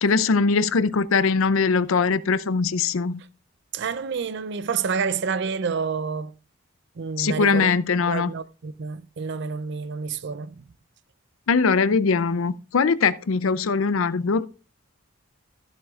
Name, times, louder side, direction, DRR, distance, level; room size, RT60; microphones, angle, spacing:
voice 1, 0.0-3.2 7.2-8.3 11.5-14.5, left 4 dB, 85° left, 0.5 m, -21 dB
voice 2, 3.7-6.3 7.0-7.7 8.1-10.6, right 5 dB, 60° right, 0.5 m, -28 dB
14.5 x 7.4 x 2.4 m
head